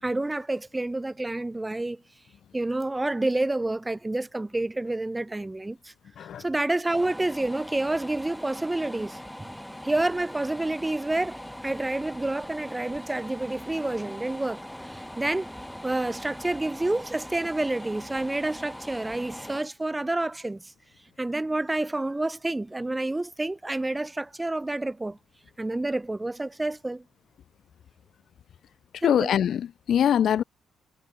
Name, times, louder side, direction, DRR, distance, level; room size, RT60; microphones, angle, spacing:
voice 1, 0.0-2.0 2.5-5.9 6.4-9.5 9.8-14.6 14.9-15.5 15.8-20.6 21.2-25.2 25.6-27.0 29.0-29.4, right 2 dB, 15° right, 0.7 m, -29 dB
sound 1, 6.9-19.6, equal, 5° left, 1.6 m, -41 dB
voice 2, 29.0-30.4, left 9 dB, 65° left, 0.6 m, -23 dB
cardioid pair, 90°, 0 cm